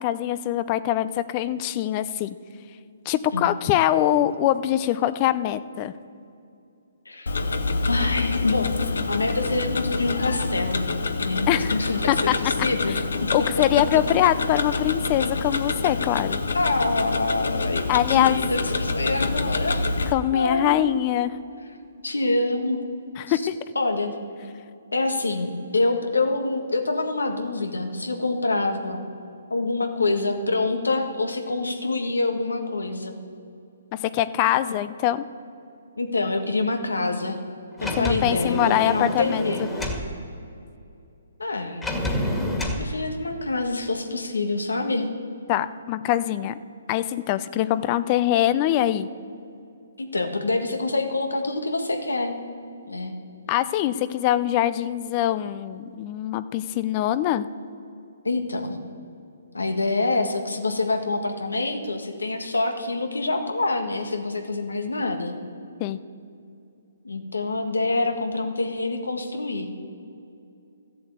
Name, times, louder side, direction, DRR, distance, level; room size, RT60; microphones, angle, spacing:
voice 1, 0.0-2.3 3.1-5.9 11.5-11.7 12.1-12.3 13.3-16.4 17.9-18.4 20.1-21.3 23.2-23.6 33.9-35.2 38.0-39.4 45.5-46.6 46.9-49.1 53.5-57.5 65.8-66.0, left 12 dB, 30° left, 14 dB, 0.5 m, -23 dB
Tick-tock, 7.3-20.1, left 3 dB, 75° left, 1.0 m, -27 dB
voice 2, 7.9-13.5 16.5-19.8 20.3-20.8 22.0-22.8 23.3-23.4 23.8-24.2 24.9-29.0 29.5-33.2 36.0-37.4 37.8-39.9 41.4-41.9 42.8-45.1 50.0-52.3 52.8-53.2 58.2-58.8 59.5-65.3 67.0-69.7, left 2 dB, 90° left, 5 dB, 1.7 m, -26 dB
Sliding door, 37.8-40.1 41.8-42.8, left 1 dB, 10° left, 1.9 m, -28 dB
13.5 x 7.8 x 8.1 m, 2.6 s
hypercardioid pair, 140°, 0 cm